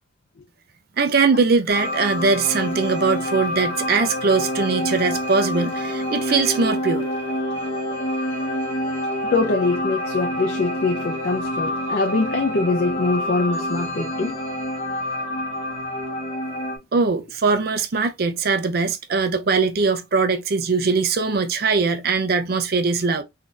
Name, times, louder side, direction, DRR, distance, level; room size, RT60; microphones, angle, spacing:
voice 1, 1.0-7.1 16.9-23.2, right 4 dB, 55° right, 0.5 m, -21 dB
sound 1, 1.7-16.8, left 1 dB, 30° left, 1.0 m, -27 dB
voice 2, 9.3-14.4, left 3 dB, 55° left, 0.5 m, -23 dB
3.8 x 2.7 x 2.4 m
head